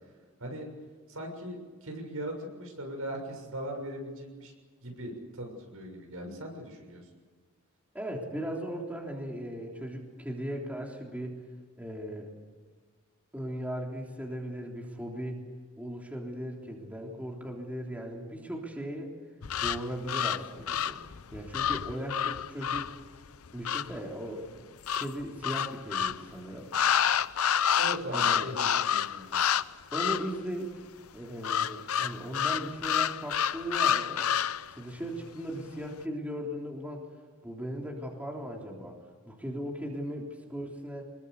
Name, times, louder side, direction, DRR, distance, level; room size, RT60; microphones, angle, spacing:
voice 1, 1.1-4.5 4.8-7.1 27.8-29.4, right 1 dB, 75° right, 3 dB, 6.6 m, -39 dB
voice 2, 7.9-11.4 11.8-12.3 13.3-15.5 15.8-19.1 19.6-21.0 21.3-22.9 23.5-24.5 25.0-26.7 28.1-28.5 29.9-30.7 31.1-34.3 34.7-37.1 37.4-39.0 39.3-41.0, equal, 5° right, -1 dB, 3.5 m, -37 dB
sound 1, 19.4-24.0 24.9-26.2 26.7-29.6 29.9-30.4 31.4-34.7, left 8 dB, 80° left, 0.7 m, -29 dB
25.5 x 21.5 x 8.3 m, 1.4 s
head